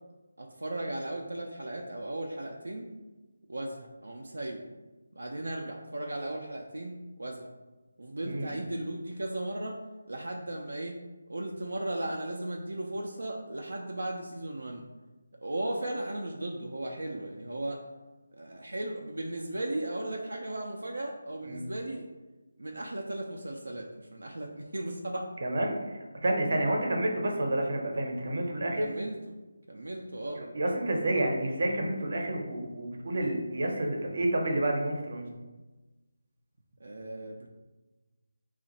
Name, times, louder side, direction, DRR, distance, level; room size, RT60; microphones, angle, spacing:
voice 1, 0.4-2.9 3.5-4.6 5.2-7.5 8.0-9.7 10.1-10.9 11.3-14.8 15.4-17.8 18.3-22.1 22.6-25.3 28.8-29.2 29.7-30.5 36.8-37.5, right 1 dB, 85° right, 0 dB, 0.4 m, -36 dB
voice 2, 8.2-8.5 21.4-21.6 25.4-25.8 26.2-28.9 30.3-35.3, right 1 dB, 55° right, 1 dB, 0.8 m, -29 dB
2.9 x 2.4 x 4.1 m, 1.2 s
figure-of-eight pair, 165°, 0 cm